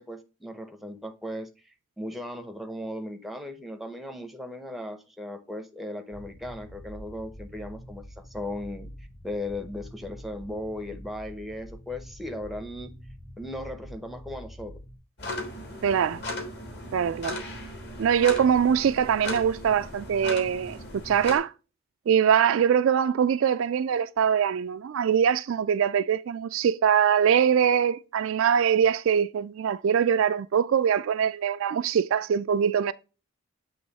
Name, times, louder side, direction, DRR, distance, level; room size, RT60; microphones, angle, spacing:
voice 1, 0.0-8.9 9.2-12.9 13.4-14.8, left 1 dB, ahead, 0.6 m, -37 dB
sound 1, 6.1-15.0, equal, 90° left, 2.4 m, -45 dB
sound 2, 15.2-21.4, left 1 dB, 50° left, 1.7 m, -37 dB
voice 2, 15.8-16.2 16.9-17.4 18.0-21.5 22.1-32.9, right 8 dB, 65° right, 0.3 m, -23 dB
7.9 x 3.1 x 4.0 m
head